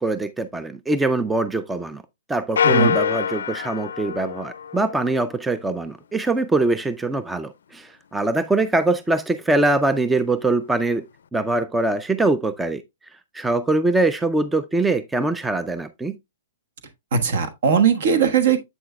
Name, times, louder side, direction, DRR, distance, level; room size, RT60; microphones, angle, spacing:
voice 1, 0.0-2.0 2.3-11.0 11.3-12.8 13.3-16.2, right 2 dB, 5° right, 0.3 m, -23 dB
sound 1, 2.6-5.3, left 7 dB, 80° left, 0.4 m, -24 dB
voice 2, 2.6-3.0 17.1-18.6, right 6 dB, 60° right, 1.2 m, -19 dB
7.7 x 6.2 x 2.2 m
hypercardioid pair, 150°, 0 cm